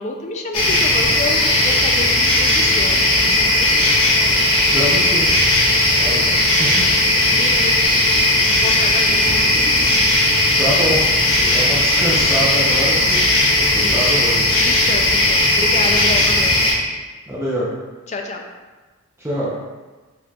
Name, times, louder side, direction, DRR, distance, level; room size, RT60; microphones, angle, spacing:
voice 1, 0.0-4.0 6.1-6.5 7.3-8.2 8.6-9.7 13.8-14.0 14.5-16.6 18.1-18.4, left 2 dB, 30° left, 3 dB, 0.4 m, -29 dB
sound 1, 0.5-16.7, left 1 dB, 75° left, 1.2 m, -16 dB
voice 2, 4.6-5.3 6.0-6.2 6.6-6.8 10.6-11.0 11.4-13.3 13.7-14.6 17.3-17.7 19.2-19.5, right 1 dB, 10° right, -7 dB, 0.6 m, -24 dB
4.9 x 4.3 x 2.3 m, 1.3 s
head